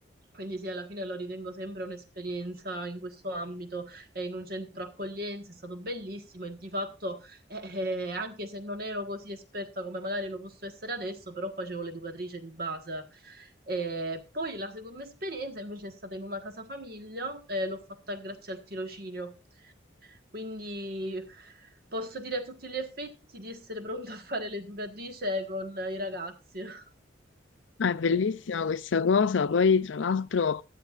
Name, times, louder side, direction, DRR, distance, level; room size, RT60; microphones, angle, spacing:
voice 1, 0.3-17.8 18.1-19.3 19.6-19.7 20.0-26.8, equal, 50° right, 1.4 m, -36 dB
voice 2, 27.8-30.6, left 5 dB, 80° left, 0.5 m, -25 dB
15.5 x 11.5 x 2.4 m
head